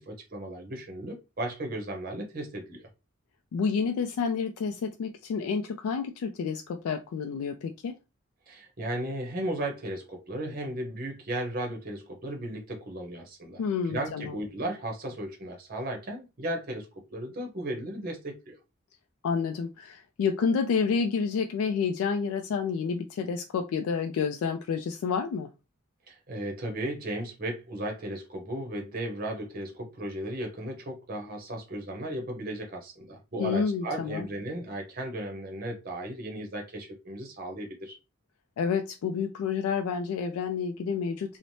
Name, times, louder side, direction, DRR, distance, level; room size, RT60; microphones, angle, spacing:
voice 1, 0.0-2.9 8.5-18.6 26.1-38.0, right 1 dB, 45° right, 0.7 m, -35 dB
voice 2, 3.5-8.0 13.6-14.3 19.2-25.5 33.4-34.3 38.6-41.4, left 5 dB, 85° left, 0.3 m, -29 dB
3.1 x 2.0 x 2.6 m
head